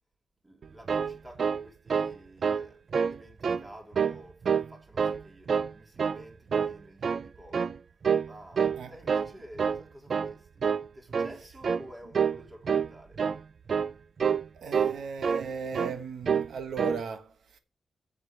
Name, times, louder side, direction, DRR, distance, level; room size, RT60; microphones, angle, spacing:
voice 1, 0.4-10.7 10.9-13.2, equal, 15° right, 3.6 m, -51 dB
sound 1, 0.6-2.2 2.4-2.7 2.9-3.6 3.9-4.7 5.0-5.7 6.0-6.2 6.5-7.3 7.5-7.8 8.0-8.3 8.6-9.3 9.6-9.8 10.1-10.3 10.6-10.9 11.1-11.4 11.6-11.9 12.1-12.4 12.6-12.9 13.2-13.4 13.7-13.9 14.2-14.4 14.7-15.5 15.7-16.0 16.2-16.5 16.8-17.0, right 6 dB, 60° right, 0.4 m, -27 dB
voice 2, 14.5-17.6, right 6 dB, 90° right, 1.3 m, -37 dB
8.0 x 7.7 x 6.2 m
wide cardioid pair, 100°, 0 cm